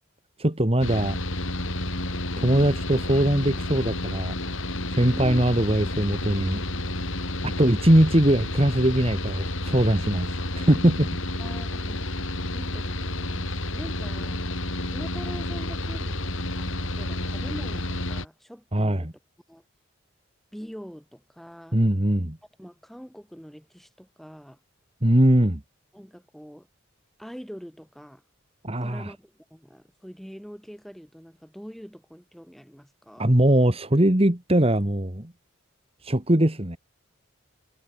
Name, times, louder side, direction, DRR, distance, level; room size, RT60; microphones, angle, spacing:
voice 1, 0.4-1.2 2.4-4.3 5.0-6.6 7.4-11.1 18.7-19.1 21.7-22.4 25.0-25.6 28.6-29.1 33.2-35.3 36.0-36.8, right 1 dB, 30° right, 1.9 m, -21 dB
Mechanical fan, 0.8-18.3, left 1 dB, 70° left, 6.8 m, -30 dB
voice 2, 2.3-2.8 5.1-5.5 11.4-12.1 12.5-14.4 14.9-19.1 19.5-19.6 20.5-21.8 22.6-24.6 25.9-26.7 27.2-28.2 28.8-33.3, equal, ahead, 5.0 m, -43 dB
head